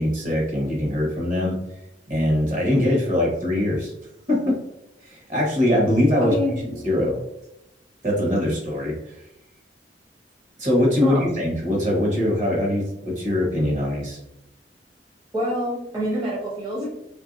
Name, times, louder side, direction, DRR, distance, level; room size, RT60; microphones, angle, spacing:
voice 1, 0.0-1.6 2.1-3.9 4.3-4.6 5.0-6.3 6.8-7.2 8.0-9.1 10.6-14.2, left 1 dB, 45° right, -2 dB, 1.2 m, -22 dB
voice 2, 6.2-6.7 11.0-11.3 15.3-16.9, equal, 20° right, -7 dB, 0.7 m, -26 dB
3.1 x 2.6 x 2.5 m, 0.86 s
head